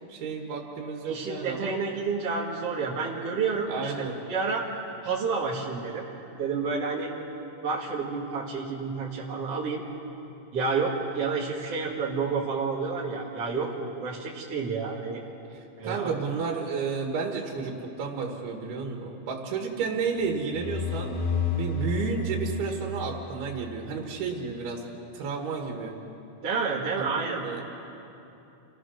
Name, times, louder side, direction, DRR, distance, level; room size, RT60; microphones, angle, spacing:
voice 1, 0.1-1.8 3.7-4.2 15.8-21.2 21.5-24.8 25.1-26.0 27.0-27.6, right 5 dB, 80° right, 1 dB, 3.6 m, -32 dB
voice 2, 1.1-4.7 5.0-6.1 6.4-7.1 7.6-9.8 10.5-15.2 15.8-16.1 26.4-27.6, right 4 dB, 45° right, -6 dB, 2.6 m, -30 dB
sound 1, 20.2-23.9, left 4 dB, 80° left, 3.4 m, -31 dB
29.0 x 17.0 x 6.4 m, 2.9 s
omnidirectional pair, 4.4 m